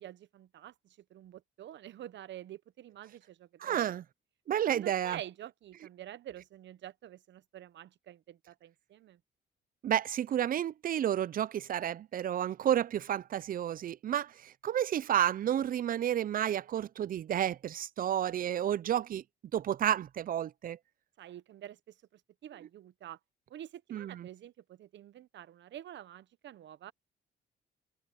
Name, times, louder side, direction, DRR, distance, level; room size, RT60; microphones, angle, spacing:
voice 1, 0.0-4.0 4.7-9.2 21.2-23.2 23.5-26.9, right 12 dB, 65° right, 0.8 m, -48 dB
voice 2, 3.6-4.0 4.5-5.2 9.8-19.2 19.5-20.8 23.9-24.3, right 10 dB, 45° right, 0.4 m, -31 dB
cardioid pair, 90°, 20 cm